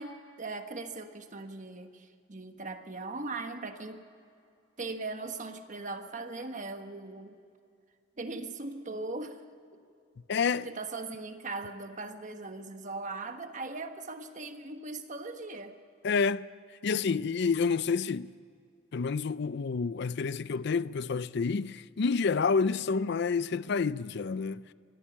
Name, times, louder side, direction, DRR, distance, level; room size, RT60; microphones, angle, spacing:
voice 1, 0.0-4.0 4.8-7.4 8.2-9.4 10.4-15.8, right 3 dB, 40° right, 1.4 m, -39 dB
voice 2, 10.3-10.7 16.0-16.5 16.8-18.3 18.9-24.6, left 5 dB, 60° left, 0.5 m, -29 dB
23.5 x 14.5 x 8.7 m
head